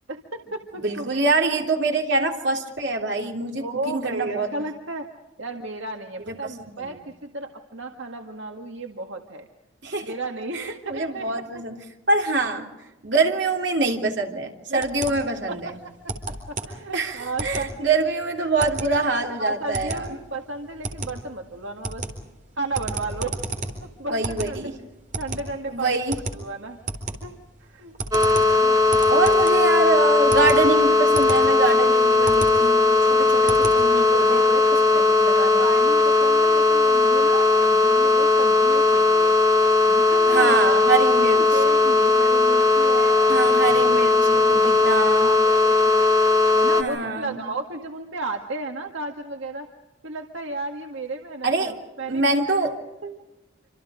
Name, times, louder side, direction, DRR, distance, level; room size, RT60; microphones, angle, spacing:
voice 1, 0.1-1.3 3.6-5.1 5.4-9.5 10.0-11.3 11.5-11.6 14.7-14.8 15.5-15.6 15.8-15.9 16.5-18.0 18.6-22.1 22.6-23.4 23.8-24.7 25.2-26.0 26.3-26.8 27.2-27.3 27.6-27.9 28.4-29.4 34.0-35.0 35.6-39.4 39.9-40.8 41.3-43.2 44.3-44.6 45.0-46.1 46.5-49.7 50.0-53.2, right 2 dB, 75° right, 3 dB, 1.8 m, -34 dB
voice 2, 0.8-4.5 6.3-6.5 6.8-7.0 9.8-10.1 10.5-11.8 12.1-12.7 13.0-15.7 16.9-20.1 24.1-24.8 25.7-26.1 29.1-35.7 40.3-41.6 43.3-45.3 46.8-47.4 51.4-51.7 52.1-52.7, right 3 dB, 60° right, 2 dB, 3.3 m, -25 dB
sound 1, 14.8-34.2, right 2 dB, 40° right, 4.0 m, -34 dB
sound 2, 28.1-46.8, left 3 dB, 20° right, 1.7 m, -18 dB
27.5 x 26.5 x 5.0 m, 1.0 s
head